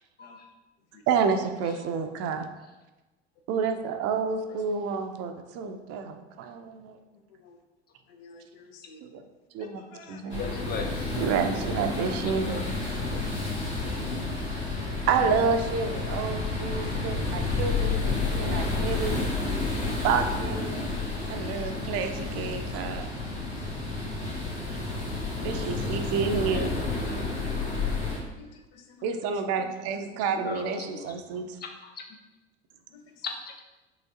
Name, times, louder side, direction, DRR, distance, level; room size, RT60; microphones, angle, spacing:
voice 1, 1.1-2.5 3.5-7.0 9.0-9.2 9.5-9.8 10.1-10.4 11.2-12.6 13.1-13.5 15.1-19.3 20.0-20.9 21.3-23.1 25.4-26.7 29.0-31.6, right 5 dB, 50° right, 6 dB, 0.5 m, -29 dB
voice 2, 8.1-9.0 9.9-10.2 13.8-15.0 16.0-16.2 20.7-21.1 22.3-22.4 23.6-23.7 25.4-26.4 27.3-27.4 28.2-29.0 29.9-30.0 32.9-33.0, left 5 dB, 65° left, 4 dB, 0.7 m, -49 dB
sound 1, 10.3-28.2, left 3 dB, 90° left, 1.2 m, -30 dB
voice 3, 10.3-11.2 12.3-12.6 26.5-26.8 27.1-27.4 30.3-31.1 31.6-31.7 32.0-32.1 33.2-33.5, left 4 dB, 30° left, 3 dB, 0.7 m, -37 dB
5.6 x 3.1 x 2.8 m, 1.1 s
hypercardioid pair, 70°, 32 cm